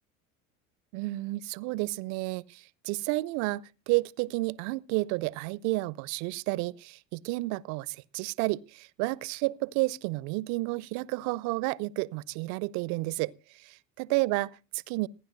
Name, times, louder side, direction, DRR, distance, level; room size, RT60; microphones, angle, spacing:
voice 1, 0.9-13.3 13.7-15.1, right 22 dB, 50° right, 0.5 m, -31 dB
27.0 x 10.0 x 2.5 m
figure-of-eight pair, 65°, 39 cm